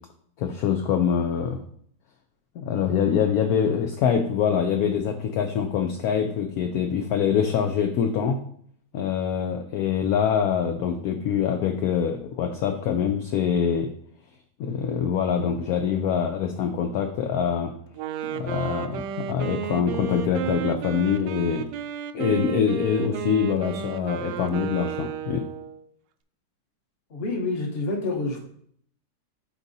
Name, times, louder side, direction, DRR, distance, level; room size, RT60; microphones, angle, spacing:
voice 1, 0.4-1.6 2.6-8.4 8.9-13.9 14.6-17.7 18.3-21.7 22.1-25.5, left 7 dB, 70° left, 5 dB, 0.9 m, -24 dB
Wind instrument woodwind instrument, 17.9-25.9, right 9 dB, 80° right, 1.2 m, -32 dB
voice 2, 27.1-28.4, left 3 dB, 40° left, 1 dB, 1.2 m, -28 dB
12.0 x 4.0 x 2.7 m, 0.64 s
omnidirectional pair, 1.9 m